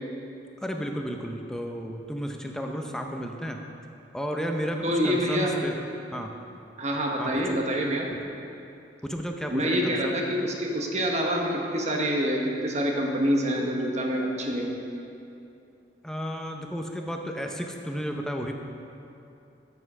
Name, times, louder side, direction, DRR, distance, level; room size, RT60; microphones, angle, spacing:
voice 1, 0.6-3.6 4.1-5.8 6.1-6.3 7.2-7.6 9.0-10.1 16.0-18.6, equal, 5° left, 2 dB, 0.6 m, -32 dB
voice 2, 4.8-5.5 6.8-8.1 9.5-14.7, equal, 40° right, 0 dB, 1.2 m, -26 dB
7.9 x 7.8 x 6.0 m, 2.7 s
head